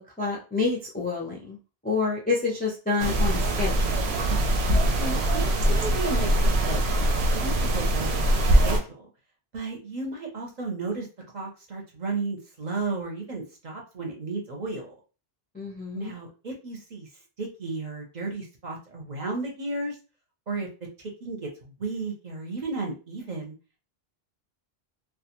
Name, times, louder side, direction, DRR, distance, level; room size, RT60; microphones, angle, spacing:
voice 1, 0.2-1.6 1.8-4.0 15.5-16.1, left 4 dB, 15° left, -2 dB, 0.3 m, -28 dB
sound 1, 3.0-8.8, right 1 dB, 85° right, 0.9 m, -23 dB
voice 2, 4.9-6.8 7.3-8.3 8.6-9.1 9.5-11.1 11.3-14.9 15.9-17.1 17.4-20.0 20.5-20.7 21.2-21.5 21.8-23.6, right 3 dB, 50° right, 1 dB, 0.7 m, -33 dB
2.3 x 2.3 x 2.8 m, 0.33 s
omnidirectional pair, 1.1 m